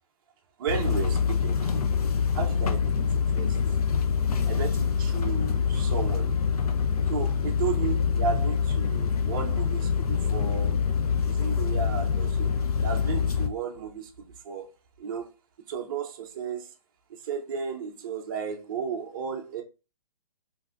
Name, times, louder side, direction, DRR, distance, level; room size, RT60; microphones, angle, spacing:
voice 1, 0.6-1.6 2.3-3.0 3.3-3.6 4.5-6.3 7.1-10.8 11.2-12.5 12.8-14.1 14.4-14.7 15.0-15.3 15.7-16.7 17.2-19.6, right 6 dB, 35° right, 0.5 m, -33 dB
sound 1, 0.7-13.5, left 6 dB, 80° left, 0.6 m, -25 dB
2.6 x 2.4 x 3.3 m
hypercardioid pair, 160°, 19 cm